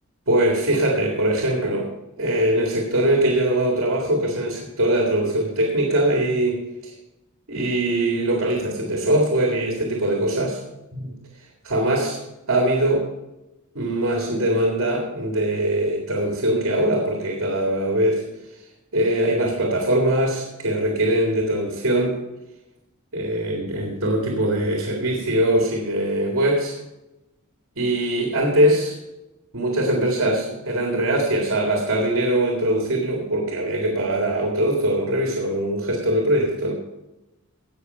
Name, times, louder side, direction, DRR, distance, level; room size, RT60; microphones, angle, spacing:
voice 1, 0.3-1.9 2.2-6.9 7.5-10.6 10.9-11.2 11.6-12.2 12.5-13.1 13.8-18.2 18.9-22.2 23.1-26.7 27.8-29.0 29.5-36.7, right 1 dB, 65° right, 0 dB, 2.0 m, -22 dB
17.0 x 5.7 x 5.5 m, 0.98 s
head